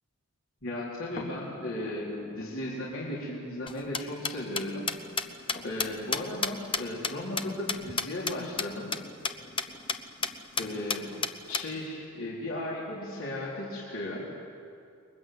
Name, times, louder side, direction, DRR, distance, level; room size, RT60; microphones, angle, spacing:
voice 1, 0.6-4.9 5.6-8.9 10.6-11.1 11.5-14.2, left 1 dB, 70° left, -5 dB, 4.4 m, -35 dB
sound 1, 1.2-11.1 11.7-11.8, left 1 dB, 45° left, 2.9 m, -50 dB
sound 2, 3.7-8.3 8.6-8.7 8.9-9.0 9.2-9.3 9.6-10.0 10.2-10.3 10.6-11.6, left 5 dB, 25° left, 0.9 m, -30 dB
29.5 x 22.5 x 7.9 m, 2.4 s
head